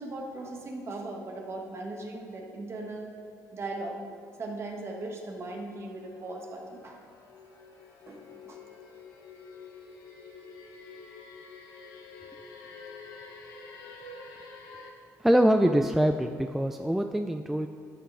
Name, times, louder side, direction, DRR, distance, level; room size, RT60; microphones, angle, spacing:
voice 1, 0.0-3.1 3.5-4.0 4.3-7.0 8.1-8.6, right 2 dB, 40° right, 1 dB, 1.3 m, -38 dB
sound 1, 6.0-14.9, left 4 dB, 90° left, 1.0 m, -48 dB
voice 2, 15.2-17.7, equal, 5° right, 6 dB, 0.3 m, -24 dB
12.5 x 5.8 x 3.4 m, 2.4 s
cardioid pair, 95°, 7 cm